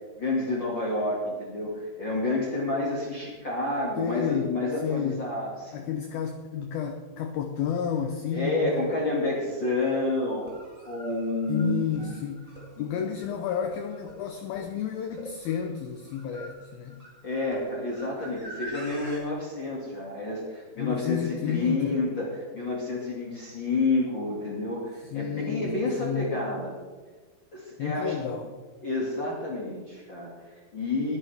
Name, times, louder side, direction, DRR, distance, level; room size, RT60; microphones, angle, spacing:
voice 1, 0.2-5.9 8.3-10.5 10.8-12.2 17.2-26.7 27.5-28.1 28.8-31.2, left 2 dB, 40° left, -4 dB, 1.9 m, -29 dB
voice 2, 4.0-4.5 4.8-5.2 5.7-8.9 11.5-12.5 12.8-17.1 20.8-22.0 25.0-26.4 27.8-28.6, left 8 dB, 90° left, 6 dB, 2.1 m, -31 dB
sound 1, 10.3-19.2, equal, 10° right, 3.3 m, -45 dB
20.0 x 10.5 x 3.6 m, 1.4 s
omnidirectional pair, 5.4 m